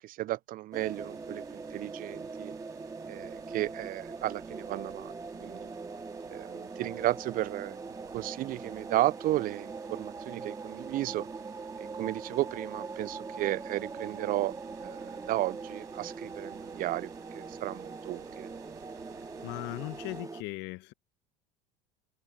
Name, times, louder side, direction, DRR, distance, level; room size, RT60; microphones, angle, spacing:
voice 1, 0.0-2.5 3.1-5.1 5.4-5.7 6.3-7.8 8.1-11.3 11.8-14.5 14.8-18.5, right 15 dB, 40° right, 0.6 m, -33 dB
sound 1, 0.7-20.4, right 4 dB, 15° right, 2.1 m, -42 dB
sound 2, 0.8-20.2, right 22 dB, 55° right, 5.3 m, -57 dB
voice 2, 19.4-20.9, left 23 dB, 55° left, 1.8 m, -38 dB
hypercardioid pair, 75°, 21 cm